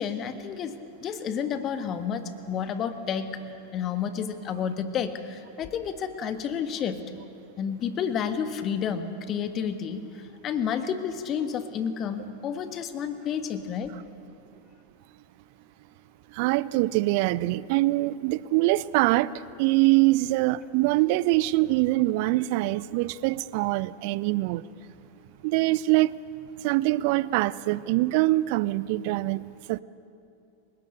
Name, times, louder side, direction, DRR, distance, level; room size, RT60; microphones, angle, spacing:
voice 1, 0.0-3.4 3.7-7.0 7.6-13.9, left 7 dB, 30° left, 1.5 m, -30 dB
voice 2, 16.4-19.3 19.6-24.6 25.4-26.1 26.6-29.4 29.7-29.8, right 18 dB, 45° right, 0.5 m, -23 dB
30.0 x 18.5 x 6.7 m
figure-of-eight pair, 90°, 0 cm